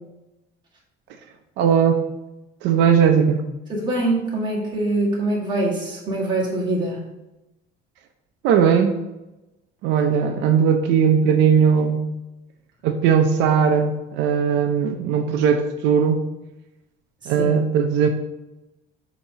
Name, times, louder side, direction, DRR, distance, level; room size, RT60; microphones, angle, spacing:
voice 1, 1.6-2.0 2.6-3.5 8.4-8.9 9.8-12.1 12.8-16.2 17.3-18.1, right 7 dB, 80° right, 5 dB, 0.6 m, -18 dB
voice 2, 3.7-7.0, right 2 dB, 25° right, -4 dB, 1.7 m, -23 dB
6.9 x 2.9 x 5.6 m, 1.0 s
cardioid pair, 170°, 19 cm